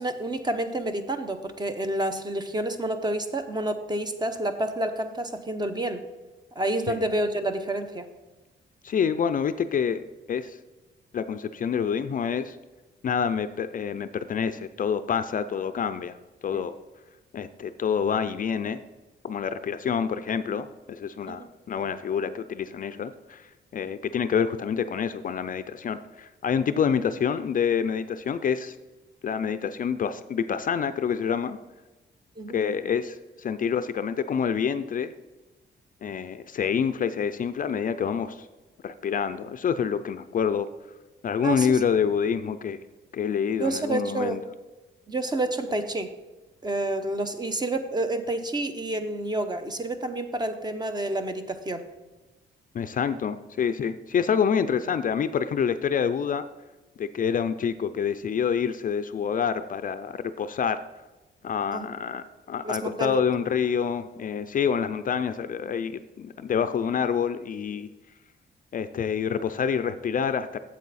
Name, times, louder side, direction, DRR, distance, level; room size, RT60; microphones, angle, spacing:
voice 1, 0.0-6.0 6.6-8.1 16.5-16.6 21.3-21.5 32.4-32.6 41.4-41.8 43.6-44.4 45.1-46.1 46.6-51.8 61.7-61.9 62.6-63.2, right 1 dB, 20° right, 8 dB, 0.7 m, -29 dB
voice 2, 8.8-10.0 10.3-10.6 11.1-12.6 13.0-16.1 16.4-16.7 17.3-18.8 19.2-23.5 23.7-28.8 29.2-31.6 32.5-35.1 36.0-38.5 38.8-40.7 41.2-42.8 43.1-44.4 52.7-56.4 57.0-60.8 61.4-67.9 68.7-70.6, left 7 dB, 45° left, 11 dB, 0.4 m, -27 dB
8.5 x 7.4 x 4.1 m, 1.1 s
cardioid pair, 120°, 19 cm